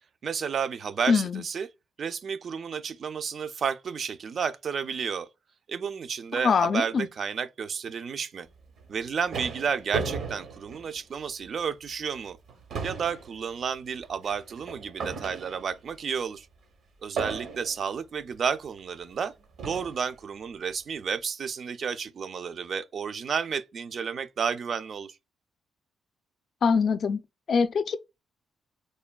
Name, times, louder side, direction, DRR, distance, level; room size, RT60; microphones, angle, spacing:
voice 1, 0.2-1.7 2.0-5.3 5.7-8.5 8.9-12.4 12.8-16.5 17.0-19.3 19.6-25.2, right 6 dB, 55° right, 0.3 m, -31 dB
voice 2, 1.1-1.4 6.4-7.1 26.6-27.2 27.5-28.0, left 5 dB, 55° left, 0.3 m, -23 dB
sound 1, 8.8-11.5 11.9-12.1 12.4-15.9 17.2-17.9 18.8-18.9 19.6-20.1, right 5 dB, 75° right, 0.7 m, -36 dB
3.1 x 2.2 x 2.2 m
cardioid pair, 70°, 0 cm